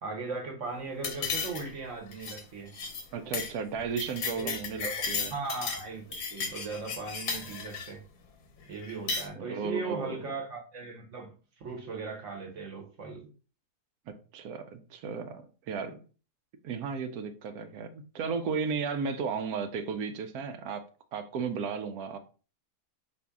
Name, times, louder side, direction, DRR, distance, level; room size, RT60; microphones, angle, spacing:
voice 1, 0.0-2.7 4.4-4.5 4.8-5.0 5.3-8.0 8.7-13.3, right 4 dB, 55° right, 1.3 m, -38 dB
sound 1, 1.0-1.8 2.1-2.4 2.7-3.0 3.3-3.5 3.8-5.8 6.1-7.9 8.8-9.3, left 5 dB, 80° left, 1.4 m, -34 dB
voice 2, 3.1-5.3 9.3-10.3 14.1-16.0 16.6-20.8 21.1-22.2, right 5 dB, 75° right, 1.1 m, -34 dB
4.3 x 3.0 x 3.5 m
omnidirectional pair, 1.7 m